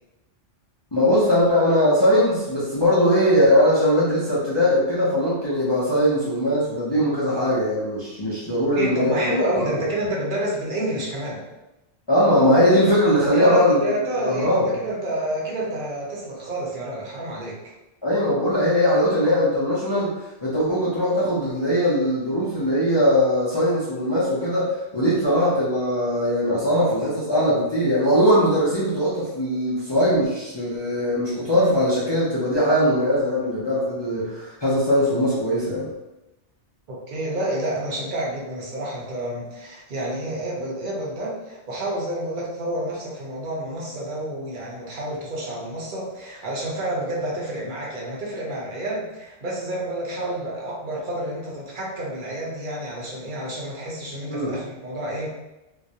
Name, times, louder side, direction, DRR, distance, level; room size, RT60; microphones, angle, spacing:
voice 1, 0.9-9.8 12.1-13.9 14.2-14.7 18.0-20.1 20.4-35.9 54.3-54.5, equal, 45° left, -9 dB, 0.3 m, -20 dB
voice 2, 8.8-11.4 13.2-17.7 36.9-55.3, right 1 dB, 50° right, -3 dB, 0.7 m, -29 dB
2.3 x 2.1 x 2.7 m, 1.0 s
omnidirectional pair, 1.2 m